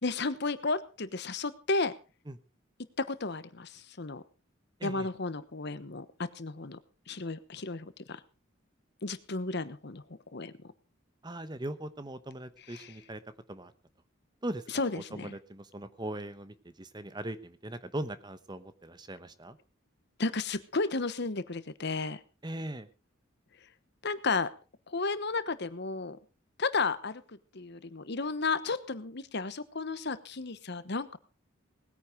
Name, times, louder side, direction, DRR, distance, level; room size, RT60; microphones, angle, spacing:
voice 1, 0.0-1.9 3.0-4.2 4.8-6.8 7.1-8.2 9.0-10.0 10.3-10.5 12.7-12.9 14.7-15.4 20.2-22.2 24.0-24.5 24.9-26.2 26.6-31.2, left 3 dB, 55° left, 14 dB, 1.1 m, -33 dB
voice 2, 11.2-13.2 13.5-13.7 14.4-14.6 14.9-19.6 22.4-22.9, right 1 dB, 20° right, 12 dB, 1.0 m, -40 dB
19.5 x 9.6 x 5.1 m, 0.34 s
head